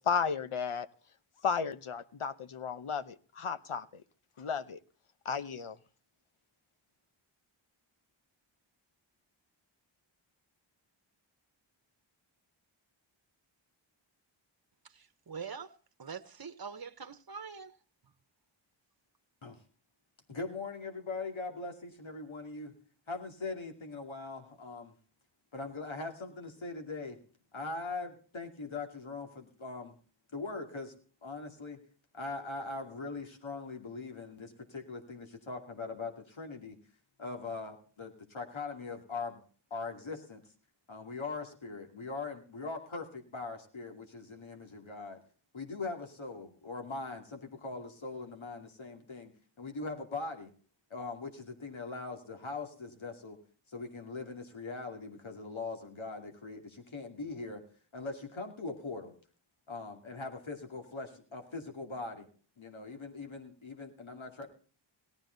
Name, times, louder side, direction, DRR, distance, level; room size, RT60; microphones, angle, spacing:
voice 1, 0.1-0.9 1.4-4.0 4.4-4.8 5.2-5.8, left 6 dB, 85° left, 1.0 m, -34 dB
voice 2, 14.8-17.7, right 6 dB, 50° right, 1.1 m, -44 dB
voice 3, 20.3-22.7 23.1-24.9 25.5-27.2 27.5-29.9 30.3-30.9 31.2-31.8 32.1-36.8 37.2-39.4 39.7-40.4 40.9-45.2 45.5-49.3 49.6-50.5 50.9-53.4 53.7-57.6 57.9-59.1 59.7-62.3 62.6-64.5, left 3 dB, 70° left, 2.7 m, -41 dB
18.0 x 12.5 x 4.0 m
wide cardioid pair, 55°, 48 cm